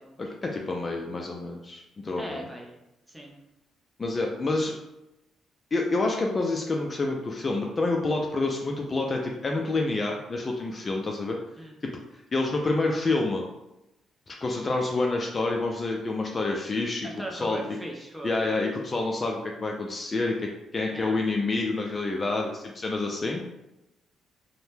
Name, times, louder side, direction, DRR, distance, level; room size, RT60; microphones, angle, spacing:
voice 1, 0.2-2.4 4.0-4.7 5.7-11.4 11.8-11.9 12.3-13.4 14.4-17.6 18.2-23.4, left 2 dB, 35° left, 1 dB, 0.4 m, -28 dB
voice 2, 2.2-2.7 3.1-3.3 11.6-11.8 17.0-18.4 20.9-21.3, right 1 dB, 5° right, -1 dB, 0.6 m, -39 dB
2.7 x 2.1 x 3.3 m, 0.91 s
cardioid pair, 90°, 0 cm